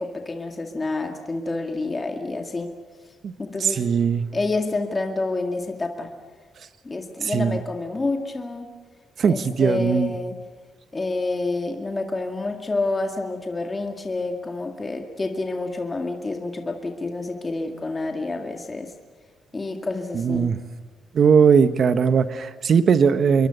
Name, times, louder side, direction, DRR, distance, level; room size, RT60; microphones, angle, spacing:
voice 1, 0.0-2.7 3.4-3.8 4.3-6.1 6.8-8.7 9.3-10.4 10.9-18.9 19.5-20.5, left 3 dB, 25° left, 3 dB, 2.1 m, -28 dB
voice 2, 3.6-4.3 7.2-7.6 9.2-10.1 20.1-20.6 21.1-23.5, right 6 dB, 55° right, 11 dB, 1.4 m, -19 dB
28.0 x 23.0 x 7.0 m, 1.4 s
cardioid pair, 90°, 0 cm